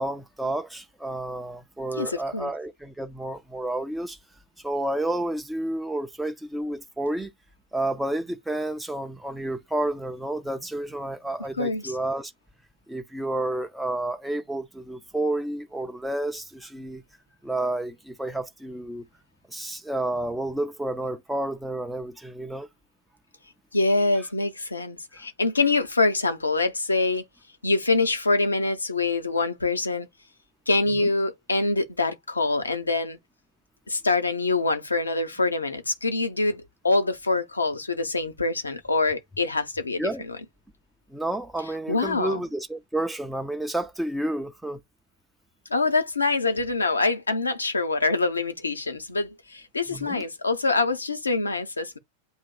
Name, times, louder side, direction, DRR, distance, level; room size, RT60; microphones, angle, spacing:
voice 1, 0.0-4.2 4.6-7.3 7.7-12.3 12.9-17.0 17.4-19.0 19.5-22.7 31.0-31.1 40.0-40.2 41.1-44.8 49.9-50.2, right 1 dB, 5° right, 0.4 m, -30 dB
voice 2, 2.0-2.5 11.6-12.0 23.7-27.2 27.6-30.1 30.7-33.2 33.9-40.4 41.9-42.4 45.7-52.0, left 3 dB, 80° left, 0.8 m, -25 dB
8.0 x 2.9 x 2.2 m
figure-of-eight pair, 90°, 0 cm